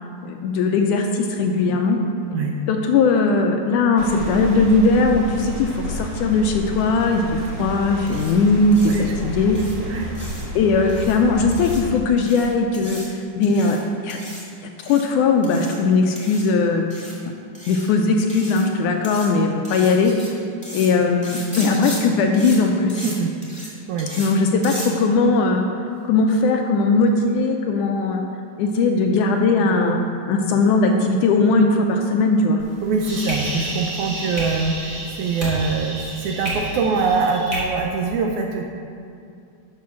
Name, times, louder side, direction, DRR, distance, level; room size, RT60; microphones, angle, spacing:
voice 1, 0.2-2.0 2.7-9.6 10.6-13.0 13.4-14.2 14.6-16.9 17.7-20.1 20.7-23.0 24.2-25.7 26.1-28.2 28.6-30.0 30.3-32.6, left 3 dB, 80° left, 3 dB, 1.9 m, -19 dB
sound 1, 4.0-12.0, equal, 55° right, 2.5 m, -31 dB
sound 2, 8.1-8.3 8.7-9.0 9.5-9.7 10.1-10.4 10.9-11.2 11.5-11.8 12.2-12.5 12.7-13.1 13.4-13.8 14.1-14.4 14.8-15.1 15.4-15.7 16.1-16.4 16.9-17.1 17.5-17.9 18.3-18.6 19.0-19.3 19.6-20.3 20.6-20.9 21.2-22.0 22.3-22.6 22.9-23.1 23.4-23.7 24.0-24.3 24.6-24.9, equal, 5° left, 1.1 m, -36 dB
voice 2, 8.8-9.3 9.9-10.1 23.0-23.3 23.6-24.1 32.8-38.6, right 4 dB, 75° right, 2 dB, 1.8 m, -24 dB
sound 3, 32.6-37.6, right 1 dB, 30° right, 2.8 m, -30 dB
12.0 x 5.2 x 5.9 m, 2.4 s
omnidirectional pair, 3.9 m